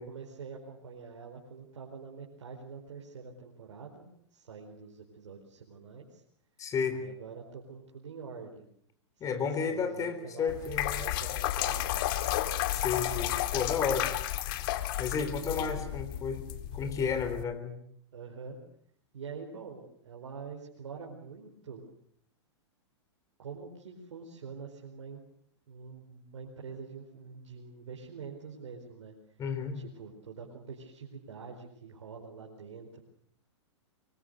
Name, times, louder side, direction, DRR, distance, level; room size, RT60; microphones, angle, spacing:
voice 1, 0.0-6.2 6.9-8.7 9.2-10.5 10.9-12.0 15.4-15.9 16.7-16.8 18.1-18.6 19.1-21.8 23.4-25.2 25.7-29.1 29.7-33.0, right 5 dB, 85° right, 0 dB, 4.7 m, -45 dB
voice 2, 6.6-7.0 9.2-11.0 12.7-14.1 15.0-16.4 16.7-17.8 29.4-29.8, left 6 dB, 20° left, 9 dB, 4.0 m, -32 dB
sound 1, 10.5-17.4, left 13 dB, 50° left, 2.2 m, -32 dB
24.5 x 24.0 x 6.7 m, 0.65 s
hypercardioid pair, 140°, 15 cm